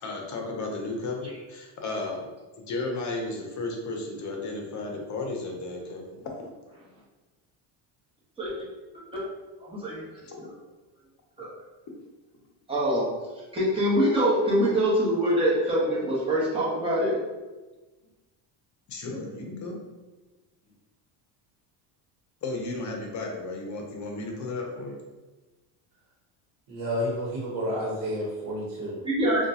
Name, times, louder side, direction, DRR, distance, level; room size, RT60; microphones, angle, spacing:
voice 1, 0.0-2.3 2.6-6.3 10.2-10.5 18.9-19.8 22.4-25.0, left 2 dB, 40° left, 1 dB, 0.8 m, -34 dB
voice 2, 9.6-10.0 11.4-11.5 12.7-13.0 13.5-17.1 29.0-29.5, equal, 10° right, -8 dB, 1.3 m, -24 dB
voice 3, 26.7-29.0, equal, 65° right, -4 dB, 1.2 m, -30 dB
3.6 x 2.5 x 2.8 m, 1.2 s
cardioid pair, 120°, 43 cm